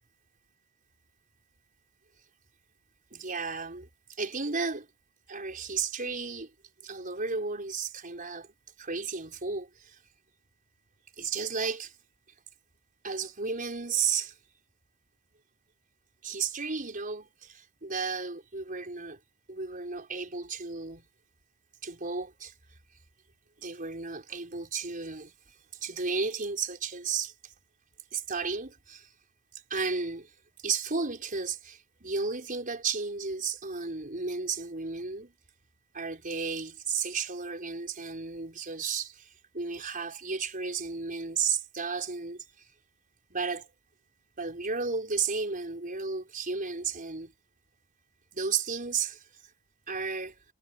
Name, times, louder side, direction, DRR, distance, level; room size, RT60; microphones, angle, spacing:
voice 1, 3.1-3.9 4.2-4.9 5.3-6.5 6.8-8.5 8.8-10.0 11.2-11.9 13.0-14.3 16.2-19.2 19.5-21.0 21.8-22.5 23.6-25.3 25.8-27.3 28.1-29.1 29.7-30.3 30.6-35.3 35.9-39.3 39.5-42.4 43.3-43.7 44.4-47.3 48.3-49.2 49.9-50.3, right 5 dB, 40° right, 5.3 m, -33 dB
head